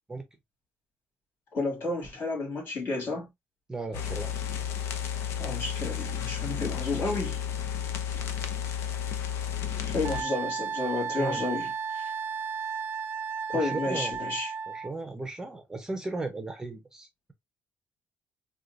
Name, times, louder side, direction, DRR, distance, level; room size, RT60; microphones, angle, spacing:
voice 1, 1.5-3.3 5.4-7.4 8.2-8.3 9.8-12.1 13.5-14.5, left 2 dB, 50° left, 2.2 m, -31 dB
voice 2, 3.7-4.3 11.1-11.4 13.5-14.1 14.7-17.3, right 2 dB, 15° right, 0.6 m, -36 dB
sound 1, 3.9-10.2, left 8 dB, 75° left, 0.6 m, -32 dB
Wind instrument woodwind instrument, 10.0-14.9, right 6 dB, 55° right, 0.4 m, -34 dB
4.4 x 2.3 x 2.5 m
cardioid pair, 130°, 4 cm